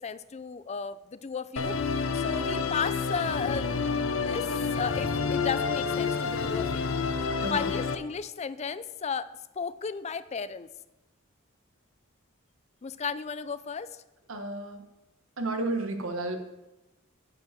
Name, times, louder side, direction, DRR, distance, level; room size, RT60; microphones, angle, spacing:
voice 1, 0.0-1.8 2.1-3.7 4.1-6.9 7.5-9.3 9.6-10.7 12.8-14.0, left 5 dB, 30° left, 15 dB, 0.4 m, -34 dB
Musical instrument, 1.6-8.0, left 5 dB, 70° left, 0.7 m, -29 dB
voice 2, 14.3-14.8 15.4-16.4, right 2 dB, 70° right, 5 dB, 1.4 m, -31 dB
9.3 x 5.1 x 7.6 m, 0.98 s
head